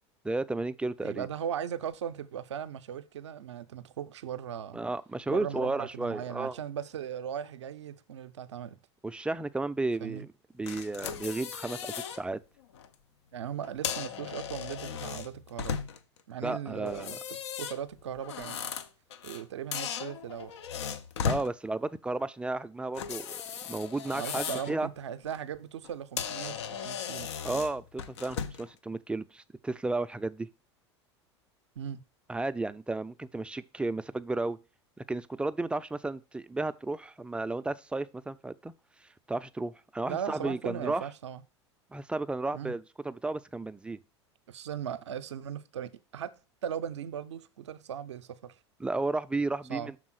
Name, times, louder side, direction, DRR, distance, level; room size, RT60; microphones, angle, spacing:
voice 1, 0.2-1.3 4.7-6.6 9.0-10.3 10.6-12.4 16.4-17.2 21.2-23.4 23.7-24.9 27.4-30.5 32.3-34.6 35.1-38.7 39.3-41.0 41.9-44.0 48.8-50.0, right 2 dB, 5° right, 0.3 m, -33 dB
voice 2, 1.0-4.8 5.3-8.8 10.0-10.2 13.3-15.8 16.3-18.6 19.2-20.5 24.0-27.3 31.8-32.0 40.1-41.4 42.5-42.7 44.5-46.3 46.6-48.6 49.7-49.9, right 9 dB, 80° right, 0.5 m, -38 dB
sound 1, 10.7-12.2 12.6-12.9 13.6-16.2 16.9-19.4 19.7-21.5 22.9-24.7 25.1-25.4 25.8-25.9 26.2-28.7, left 7 dB, 75° left, 0.6 m, -36 dB
6.3 x 3.7 x 6.1 m
hypercardioid pair, 85°, 15 cm